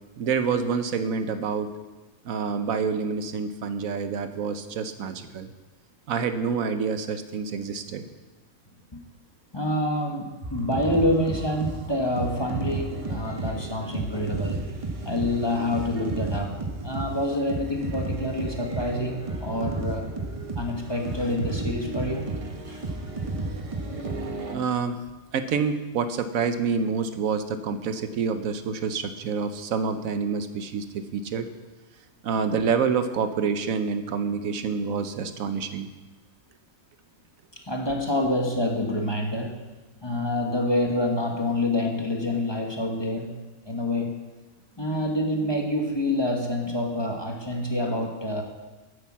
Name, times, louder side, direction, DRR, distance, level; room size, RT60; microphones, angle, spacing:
voice 1, 0.2-1.7 2.2-5.5 6.1-8.1 22.8-22.9 24.5-25.0 25.3-31.5 32.2-35.9, right 5 dB, 80° right, 10 dB, 1.2 m, -27 dB
voice 2, 9.5-14.6 15.0-20.1 20.6-22.3 22.7-22.9 37.7-39.5 40.0-43.3 43.7-44.3 44.8-48.4, left 1 dB, 20° left, 1 dB, 1.1 m, -27 dB
sound 1, 10.4-24.5, right 2 dB, 25° right, 1.0 m, -33 dB
10.0 x 8.2 x 7.3 m, 1.2 s
omnidirectional pair, 1.4 m